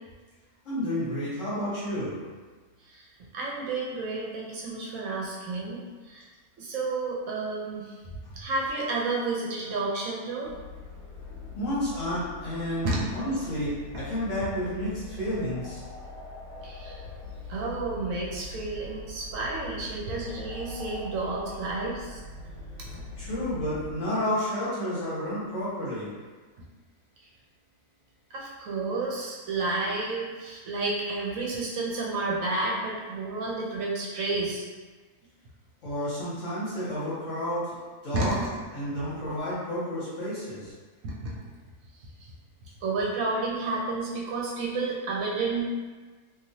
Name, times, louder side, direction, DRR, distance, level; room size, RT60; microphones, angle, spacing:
voice 1, 0.6-2.1 11.6-15.8 23.2-26.1 35.8-37.7 38.0-38.4 38.7-40.7, equal, 60° left, -9 dB, 1.3 m, -31 dB
voice 2, 3.3-6.2 6.6-10.5 12.8-13.1 13.9-14.0 16.6-17.0 17.5-22.2 22.8-23.0 28.3-34.7 38.1-38.5 41.0-41.3 42.2-42.3 42.8-45.7, right 3 dB, 70° right, -3 dB, 0.9 m, -31 dB
sound 1, 10.4-23.9, left 3 dB, 75° left, 1.0 m, -42 dB
3.0 x 2.5 x 2.6 m, 1.4 s
omnidirectional pair, 1.5 m